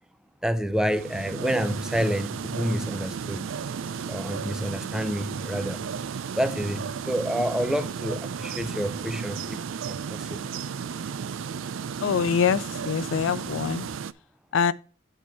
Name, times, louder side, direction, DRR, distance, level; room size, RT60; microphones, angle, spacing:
voice 1, 0.4-3.5 4.1-5.8 6.4-9.6 9.9-10.5, equal, 5° right, 0.5 m, -28 dB
sound 1, 0.7-14.1, right 6 dB, 75° right, 0.4 m, -34 dB
voice 2, 12.0-13.9 14.5-14.7, left 6 dB, 70° left, 0.4 m, -24 dB
8.9 x 4.3 x 4.5 m
head